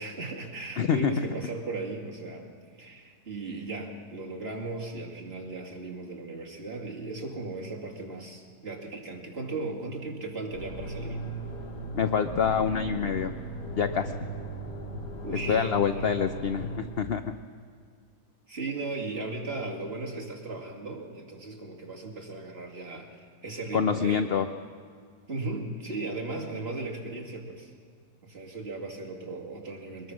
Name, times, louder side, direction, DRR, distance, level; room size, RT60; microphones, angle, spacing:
voice 1, 0.0-2.5 2.8-11.2 15.2-15.7 15.9-16.1 18.5-24.2 25.3-27.7 28.2-30.1, right 3 dB, 35° right, -2 dB, 2.6 m, -37 dB
voice 2, 0.8-1.1 12.0-13.3 13.8-14.1 15.5-17.2 23.7-24.5, left 7 dB, 60° left, 9 dB, 0.6 m, -26 dB
sound 1, 10.5-16.8, right 2 dB, 85° left, 3.1 m, -37 dB
22.5 x 20.5 x 6.1 m, 2.1 s
omnidirectional pair, 1.8 m